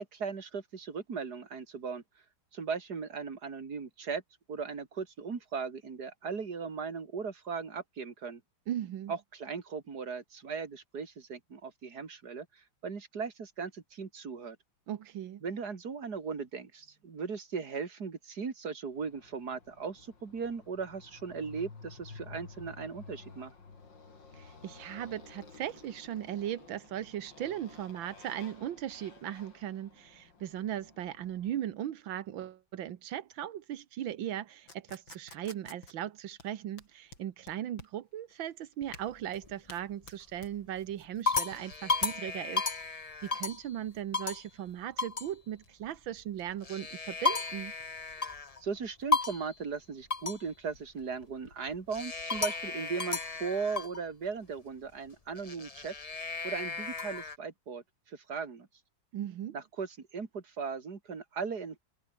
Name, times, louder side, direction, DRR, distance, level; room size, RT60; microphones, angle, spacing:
voice 1, 0.0-2.0 2.5-4.2 4.5-8.4 9.1-14.6 15.4-23.5 48.1-48.3 48.6-55.9 56.4-58.7 59.5-61.8, right 5 dB, 55° right, 3.1 m, -38 dB
voice 2, 8.7-9.1 14.9-15.4 24.3-47.7 59.1-59.6, right 11 dB, 90° right, 1.8 m, -38 dB
Motorcycle, 19.0-31.7, left 4 dB, 70° left, 4.1 m, -53 dB
sound 1, 34.7-54.3, left 2 dB, 90° left, 8.0 m, -56 dB
sound 2, 38.8-39.5 40.0-40.4 40.9-43.7 44.1-44.5 45.0-45.3 46.5-48.6 49.1-49.5 50.1-50.5 51.9-54.0 55.3-57.4, left 4 dB, 25° left, 0.9 m, -34 dB
omnidirectional pair, 2.1 m